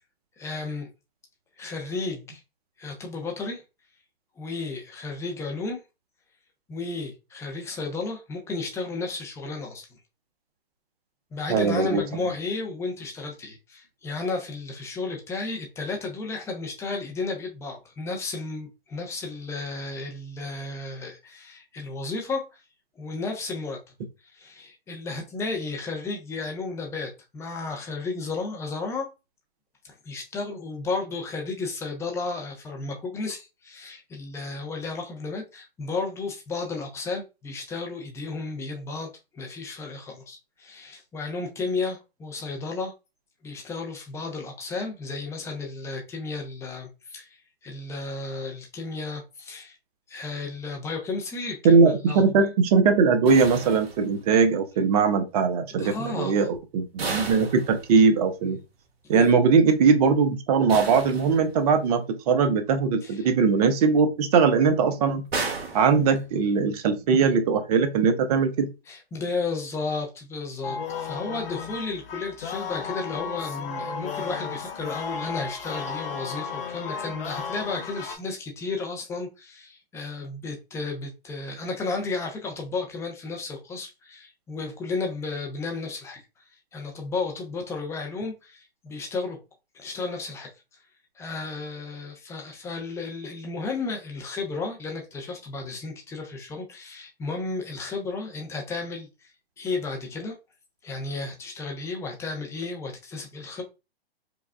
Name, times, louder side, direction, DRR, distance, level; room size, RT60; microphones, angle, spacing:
voice 1, 0.4-0.9 1.6-2.4 2.8-3.6 4.4-5.8 6.7-9.9 11.3-22.6 23.0-23.8 24.3-29.1 29.8-42.9 43.4-47.4 47.6-49.8 50.1-52.5 55.8-56.5 59.0-59.2 63.0-63.2 64.9-65.0 65.9-66.1 68.9-86.2 86.7-89.4 89.7-90.5 91.2-99.3 99.6-100.3 100.8-103.6, left 3 dB, 10° left, 0.7 m, -33 dB
voice 2, 11.5-12.0 51.6-58.6 59.1-65.2 65.7-68.7, right 5 dB, 40° right, 0.7 m, -20 dB
sound 1, 53.2-54.5 57.0-58.3 60.7-61.9 65.3-66.6, right 4 dB, 70° right, 1.2 m, -34 dB
sound 2, 70.6-78.2, left 6 dB, 60° left, 0.9 m, -34 dB
5.0 x 2.3 x 2.2 m
hypercardioid pair, 130°, 32 cm